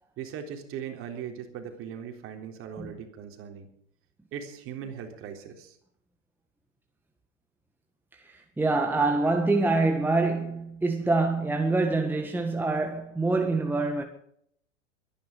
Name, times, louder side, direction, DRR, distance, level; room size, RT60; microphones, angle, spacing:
voice 1, 0.2-3.7 4.3-5.8, right 8 dB, 35° right, 3.7 m, -39 dB
voice 2, 8.2-14.0, right 3 dB, 5° right, 1.7 m, -25 dB
24.0 x 10.5 x 5.1 m
figure-of-eight pair, 95°, 37 cm